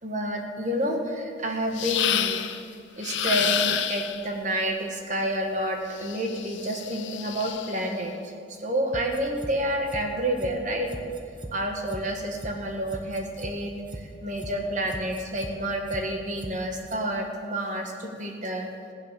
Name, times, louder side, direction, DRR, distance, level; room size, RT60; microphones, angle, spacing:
voice 1, 0.0-2.4 3.0-8.3 8.6-10.9 11.5-18.7, right 1 dB, 40° right, 3 dB, 1.5 m, -29 dB
sound 1, 1.8-2.6 3.0-4.3 6.0-7.9, left 10 dB, 70° left, 0.7 m, -29 dB
sound 2, 8.9-9.5 9.9-10.0 10.4-10.5 10.9-11.5 11.9-12.0 12.4-12.5 12.9-13.5 13.9-14.0 14.4-14.5 14.9-15.5 15.9-16.0 16.4-16.5 16.9-17.0, right 1 dB, 25° right, 1.0 m, -38 dB
16.0 x 8.2 x 6.9 m, 2.3 s
head